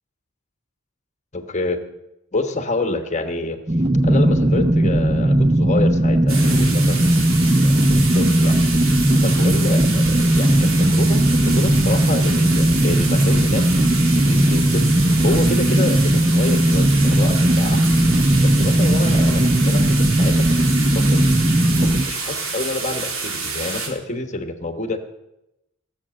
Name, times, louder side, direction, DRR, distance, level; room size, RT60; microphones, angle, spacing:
voice 1, 1.3-1.8 2.3-3.6 4.0-7.2 7.6-7.7 8.1-8.6 9.2-13.7 14.1-14.9 15.2-18.0 18.4-20.5 20.9-21.3 21.8-25.0, left 2 dB, 35° left, 8 dB, 1.2 m, -28 dB
sound 1, 3.7-22.1, right 1 dB, 25° right, 0.7 m, -17 dB
sound 2, 6.3-23.9, right 4 dB, 90° right, 3.1 m, -28 dB
18.0 x 7.5 x 7.6 m, 0.91 s
head